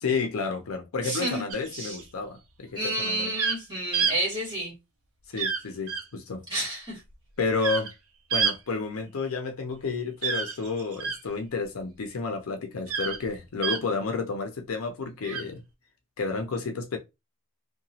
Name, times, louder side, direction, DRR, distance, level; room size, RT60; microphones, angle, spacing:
voice 1, 0.0-3.3 5.3-6.4 7.4-7.9 8.3-15.6 16.2-17.0, left 4 dB, 80° left, 0.5 m, -31 dB
voice 2, 1.0-1.4 1.7-2.0 2.7-4.7 6.5-7.0, right 1 dB, 20° right, 1.6 m, -30 dB
sound 1, 1.5-2.0 3.3-3.6 3.9-4.2 5.4-5.6 5.9-6.0 7.6-7.9 8.3-8.5 10.2-11.2 12.9-13.2 13.6-13.8 15.2-15.4, right 6 dB, 90° right, 0.5 m, -28 dB
2.8 x 2.2 x 2.7 m
head